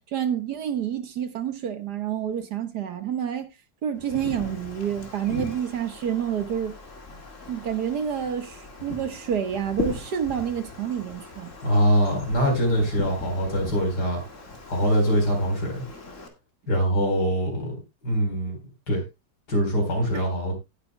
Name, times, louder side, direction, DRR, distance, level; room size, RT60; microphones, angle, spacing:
voice 1, 0.0-3.5 3.8-6.8 7.5-11.5 20.1-20.2, right 9 dB, 70° right, 1.9 m, -28 dB
Wind, 4.0-16.3, left 3 dB, 45° left, 2.6 m, -39 dB
voice 2, 11.6-14.2 14.7-15.8 16.7-17.7 18.0-18.6 18.9-19.0 19.5-20.5, equal, 70° left, 4.7 m, -23 dB
18.5 x 8.6 x 2.2 m
omnidirectional pair, 1.8 m